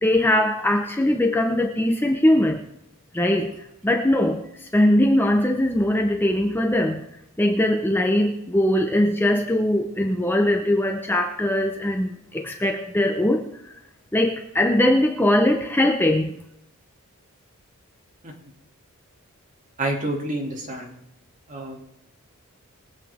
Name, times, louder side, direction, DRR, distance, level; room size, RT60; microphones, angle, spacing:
voice 1, 0.0-2.6 3.1-7.1 7.4-13.7 14.1-16.3, left 1 dB, 10° left, 3 dB, 0.9 m, -21 dB
voice 2, 19.8-20.9 21.5-21.8, right 1 dB, 35° right, -1 dB, 2.9 m, -28 dB
22.5 x 8.5 x 3.7 m, 0.81 s
head